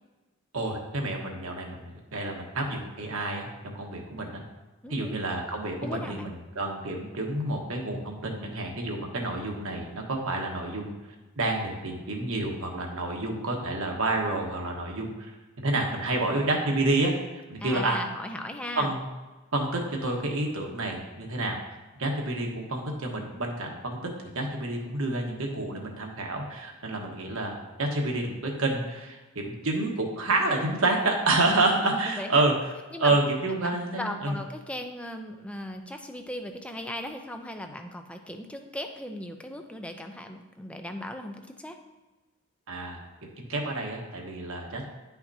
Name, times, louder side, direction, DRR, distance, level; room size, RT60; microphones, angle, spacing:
voice 1, 0.5-4.4 4.9-10.9 11.4-15.3 15.6-17.1 17.5-18.0 18.8-19.0 19.5-21.6 22.0-32.5 33.0-34.4 42.7-44.8, right 2 dB, 75° right, 1 dB, 1.3 m, -29 dB
voice 2, 4.8-5.2 5.8-6.3 17.6-18.9 32.1-32.4 32.9-33.2 33.6-41.8, left 1 dB, 5° left, 5 dB, 0.5 m, -37 dB
10.5 x 5.8 x 2.7 m, 1.2 s
head